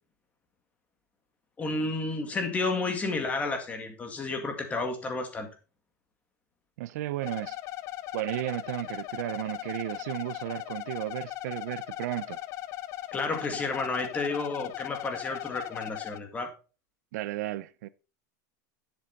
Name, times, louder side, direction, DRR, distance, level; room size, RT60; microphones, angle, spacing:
voice 1, 1.6-5.5 13.1-16.5, left 3 dB, 15° left, 2.0 m, -31 dB
voice 2, 6.8-7.6 8.1-12.4 17.1-17.9, right 16 dB, 65° right, 0.6 m, -34 dB
sound 1, 7.2-16.2, left 14 dB, 35° left, 0.5 m, -38 dB
10.5 x 7.7 x 4.0 m
supercardioid pair, 160°, 9 cm